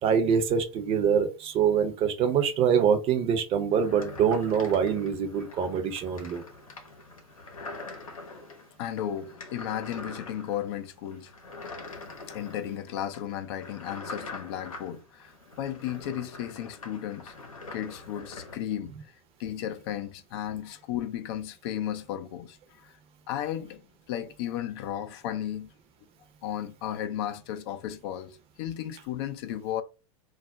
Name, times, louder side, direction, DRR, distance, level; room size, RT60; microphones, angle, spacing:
voice 1, 0.0-6.4, right 7 dB, 35° right, 0.6 m, -24 dB
sound 1, 3.7-18.6, left 3 dB, 85° left, 0.8 m, -44 dB
voice 2, 8.8-11.3 12.3-17.3 17.7-18.9 19.4-22.9 23.3-23.8 24.1-25.7 26.4-29.8, left 11 dB, 50° left, 0.4 m, -34 dB
2.3 x 2.1 x 3.6 m
hypercardioid pair, 95°, 17 cm